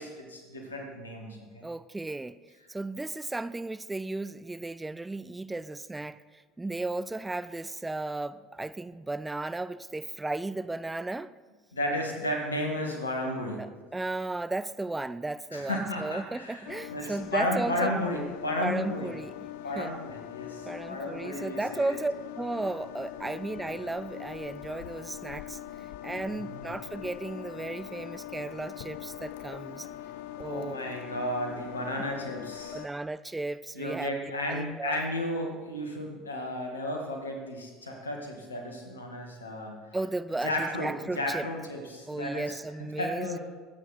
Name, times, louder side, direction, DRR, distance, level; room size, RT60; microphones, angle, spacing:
voice 1, 0.0-1.7 11.7-13.7 15.5-19.1 19.6-22.0 26.3-26.6 30.4-32.8 33.7-39.8 40.4-42.6 43.0-43.4, left 1 dB, 85° left, 2.1 m, -33 dB
voice 2, 1.6-2.4 2.7-11.3 13.6-17.9 18.6-19.5 19.8-19.9 20.7-29.9 30.4-30.8 32.7-34.1 34.5-35.0 39.9-41.5 42.1-43.4, right 2 dB, 15° right, 0.5 m, -35 dB
sound 1, 16.6-32.9, left 13 dB, 65° left, 0.5 m, -42 dB
22.0 x 9.0 x 4.2 m
figure-of-eight pair, 65°, 0 cm